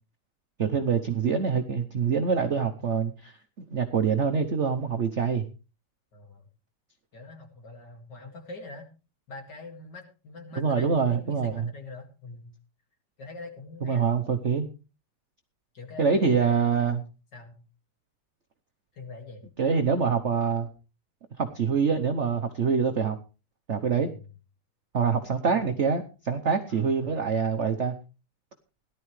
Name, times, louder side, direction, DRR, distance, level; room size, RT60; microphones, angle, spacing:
voice 1, 0.6-3.3 3.7-5.5 10.6-11.7 13.8-14.7 16.0-17.0 19.6-20.7 21.4-23.2 23.7-24.1 24.9-27.9, right 6 dB, 60° right, 6 dB, 0.7 m, -25 dB
voice 2, 2.2-2.7 6.1-6.5 7.1-8.9 9.3-12.5 13.2-14.1 15.7-17.0 17.3-17.6 18.9-19.4 23.9-24.3 25.4-25.7 26.7-27.2, left 2 dB, 50° left, 4 dB, 2.8 m, -44 dB
17.5 x 11.5 x 3.2 m, 0.32 s
omnidirectional pair, 2.4 m